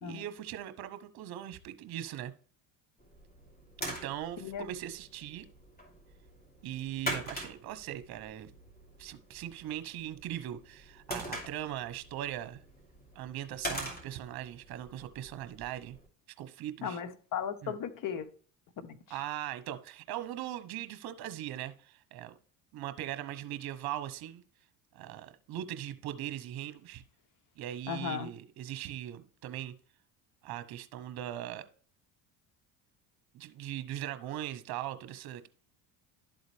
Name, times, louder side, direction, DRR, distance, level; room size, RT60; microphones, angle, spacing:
voice 1, 0.0-2.3 3.8-5.5 6.6-8.5 9.0-12.6 13.1-16.0 16.4-17.0 17.6-17.8 19.1-22.4 22.7-24.4 24.9-27.0 27.6-29.7 30.4-31.7 33.3-35.5, right 12 dB, 55° right, 1.0 m, -40 dB
sound 1, 3.0-16.1, equal, 20° left, 2.7 m, -44 dB
voice 2, 16.8-18.3 18.8-19.0 27.9-28.3, left 8 dB, 45° left, 1.0 m, -36 dB
11.5 x 4.0 x 3.2 m
supercardioid pair, 90°, 45 cm